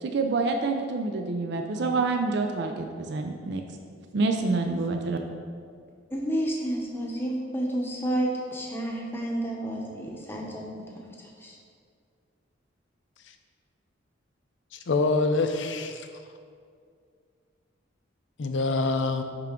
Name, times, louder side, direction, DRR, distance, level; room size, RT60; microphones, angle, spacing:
voice 1, 0.0-3.6 4.1-5.2, right 3 dB, 55° right, 4 dB, 0.4 m, -27 dB
voice 2, 6.1-10.7 10.9-11.0 11.4-11.6, right 1 dB, 10° left, -2 dB, 0.8 m, -30 dB
voice 3, 14.7-16.0 18.4-19.2, left 3 dB, 65° left, 7 dB, 0.5 m, -25 dB
10.0 x 3.6 x 3.6 m, 2.2 s
head